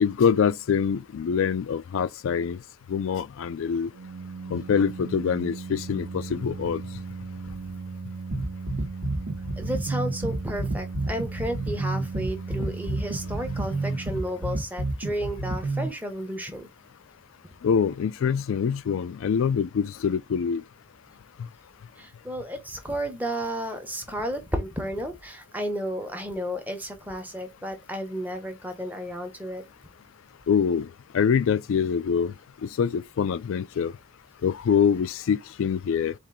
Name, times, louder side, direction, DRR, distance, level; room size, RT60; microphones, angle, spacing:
voice 1, 0.0-2.6 2.9-3.9 4.5-6.8 17.6-20.6 30.5-30.9 31.1-32.3 32.6-33.9 34.4-36.1, left 7 dB, 65° left, 0.3 m, -24 dB
Organ, 3.9-14.7, right 4 dB, 65° right, 0.5 m, -38 dB
sound 1, 8.3-15.9, right 2 dB, 85° right, 1.0 m, -29 dB
voice 2, 9.6-16.7 22.0-29.6, equal, 10° right, 0.7 m, -32 dB
4.2 x 2.5 x 3.6 m
head